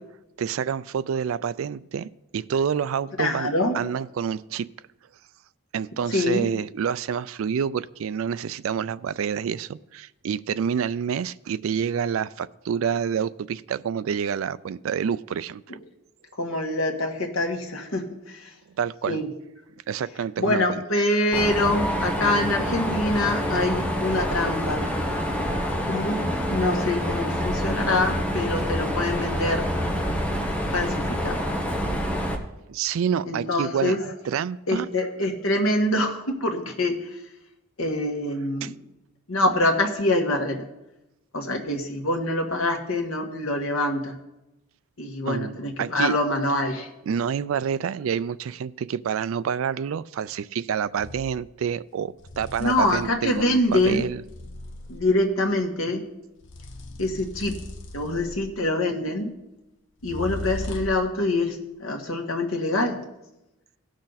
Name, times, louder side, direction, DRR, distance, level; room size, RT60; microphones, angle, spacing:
voice 1, 0.4-3.5 3.7-4.6 5.7-15.6 18.8-19.2 19.9-20.8 32.7-34.0 34.2-34.9 38.6-38.7 45.2-46.2 47.1-54.2, right 7 dB, 80° right, 15 dB, 0.4 m, -28 dB
voice 2, 3.2-3.7 6.1-6.5 16.4-18.5 19.1-19.3 20.4-24.8 25.9-26.2 26.5-29.6 30.7-31.4 33.2-34.0 34.7-36.9 37.8-38.7 39.3-40.6 41.3-44.2 45.0-46.9 52.6-54.0 54.9-56.0 57.0-57.5 57.9-59.3 60.0-63.0, left 1 dB, 90° left, 2 dB, 1.6 m, -25 dB
Mechanisms, 21.3-32.3, equal, 5° left, 1.0 m, -27 dB
sound 1, 51.0-51.3 52.2-55.2 56.4-58.7 60.0-61.1, left 2 dB, 60° left, 0.9 m, -38 dB
17.0 x 6.4 x 4.1 m, 0.92 s
head